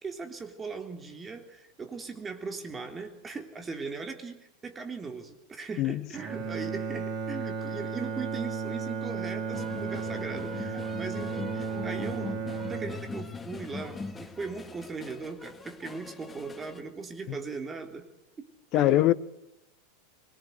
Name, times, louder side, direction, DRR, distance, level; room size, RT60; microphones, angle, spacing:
voice 1, 0.0-12.3 12.6-18.1 18.4-18.5 18.7-19.1, right 4 dB, 20° right, 3.5 m, -39 dB
Bowed string instrument, 6.1-14.4, right 5 dB, 40° right, 4.3 m, -35 dB
sound 1, 9.5-16.8, left 4 dB, 20° left, 1.8 m, -41 dB
voice 2, 18.7-19.1, left 16 dB, 50° left, 1.1 m, -22 dB
24.0 x 22.0 x 8.1 m
hypercardioid pair, 90°, 0 cm